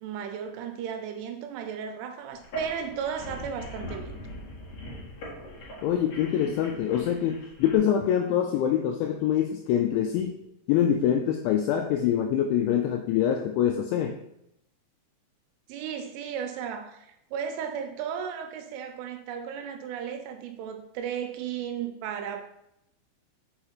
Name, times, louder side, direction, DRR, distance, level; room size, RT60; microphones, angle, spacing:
voice 1, 0.0-4.2 6.3-6.8 15.7-22.4, right 7 dB, 85° right, 6 dB, 2.9 m, -35 dB
sound 1, 2.4-7.8, equal, 50° left, 2.2 m, -41 dB
voice 2, 5.8-10.4 10.7-14.2, left 9 dB, 85° left, 4 dB, 2.6 m, -25 dB
6.5 x 5.5 x 2.9 m, 0.80 s
omnidirectional pair, 5.8 m